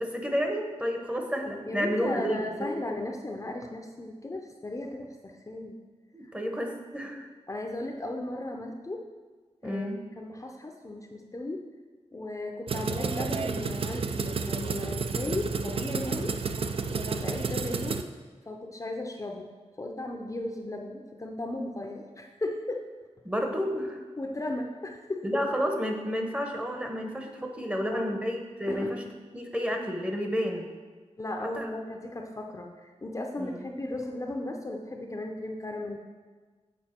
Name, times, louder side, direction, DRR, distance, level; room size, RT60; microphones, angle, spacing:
voice 1, 0.0-2.7 6.1-7.3 9.6-10.1 23.2-24.0 25.2-29.0 29.3-30.7 31.5-31.7 33.4-33.7, equal, 10° right, 3 dB, 0.8 m, -31 dB
voice 2, 1.7-5.7 6.2-6.3 7.5-9.0 9.6-11.6 12.1-16.4 16.8-18.1 18.5-19.5 19.8-22.9 24.2-25.4 27.9-28.2 28.7-29.1 31.2-36.0, left 2 dB, 30° left, 2 dB, 0.6 m, -36 dB
sound 1, 12.7-18.0, right 5 dB, 55° right, 0.4 m, -31 dB
7.8 x 4.4 x 4.4 m, 1.4 s
wide cardioid pair, 95°, 12 cm